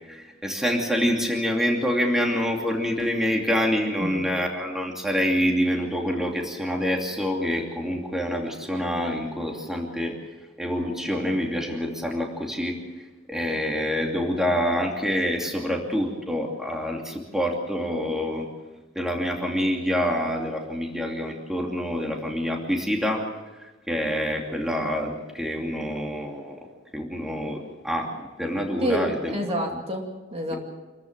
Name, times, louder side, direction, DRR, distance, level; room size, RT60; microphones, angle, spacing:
voice 1, 0.1-10.2 10.6-12.8 13.3-18.5 18.9-23.2 23.9-26.6 26.9-28.1 28.4-29.3 30.5-30.6, equal, ahead, 0 dB, 2.7 m, -26 dB
voice 2, 28.8-30.6, equal, 30° right, 2 dB, 2.5 m, -28 dB
27.0 x 14.0 x 7.5 m, 1.2 s
head